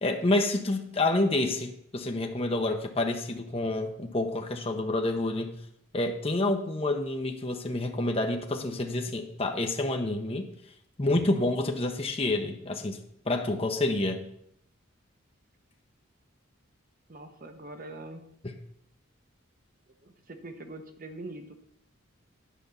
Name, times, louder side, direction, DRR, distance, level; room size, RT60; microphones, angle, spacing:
voice 1, 0.0-5.6 5.9-10.5 11.0-13.0 13.3-14.2, left 2 dB, 30° left, 4 dB, 0.8 m, -28 dB
voice 2, 17.1-18.2 20.0-21.6, right 2 dB, 40° right, 6 dB, 1.0 m, -43 dB
10.0 x 5.2 x 7.0 m, 0.72 s
head